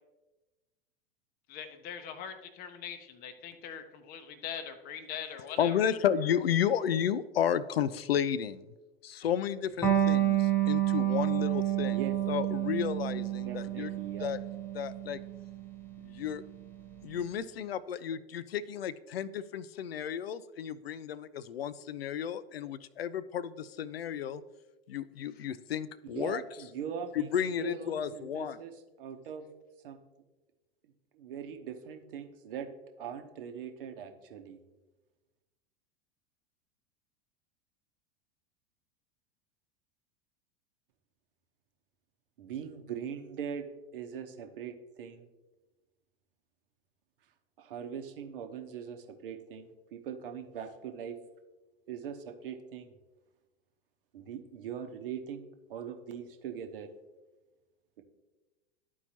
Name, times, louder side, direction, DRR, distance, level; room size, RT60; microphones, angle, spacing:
voice 1, 1.5-5.8 25.4-25.5, left 8 dB, 30° left, 8 dB, 0.7 m, -42 dB
voice 2, 5.6-8.6 9.0-12.0 12.3-13.9 14.2-14.4 14.7-15.2 16.0-16.4 17.0-24.4 24.9-26.4 27.1-28.6, left 9 dB, 70° left, 17 dB, 0.5 m, -32 dB
Electric guitar, 9.8-17.0, right 12 dB, 5° left, 1.1 m, -30 dB
voice 3, 13.5-14.3 26.0-29.5 29.8-30.0 31.1-32.7 33.0-34.6 42.4-43.7 43.9-45.3 47.6-51.2 51.9-52.9 54.1-56.9, right 8 dB, 60° right, 6 dB, 0.9 m, -41 dB
12.0 x 4.6 x 2.8 m, 1.1 s
figure-of-eight pair, 85°, 31 cm